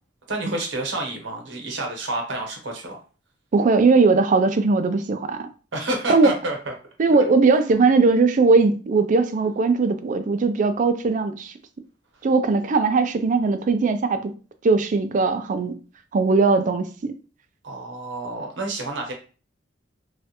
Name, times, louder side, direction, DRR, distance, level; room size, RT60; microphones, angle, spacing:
voice 1, 0.3-3.0 5.7-6.7 17.6-19.1, right 2 dB, 80° right, 1.0 m, -29 dB
voice 2, 3.5-5.5 6.1-6.3 7.0-11.5 12.2-14.3 14.6-15.7 16.1-17.1, right 4 dB, 45° right, 0.4 m, -19 dB
3.2 x 2.4 x 2.9 m
head